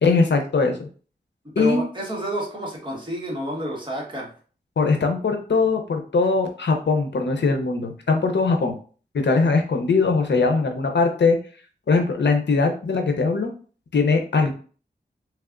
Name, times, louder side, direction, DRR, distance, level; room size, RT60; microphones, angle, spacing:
voice 1, 0.0-0.9 1.6-1.8 4.8-8.7 9.1-11.4 11.9-13.5 13.9-14.5, left 4 dB, 80° left, 4 dB, 0.6 m, -21 dB
voice 2, 1.6-4.3, right 1 dB, 25° right, -3 dB, 1.4 m, -29 dB
3.4 x 3.3 x 2.4 m, 0.40 s
wide cardioid pair, 70°, 18 cm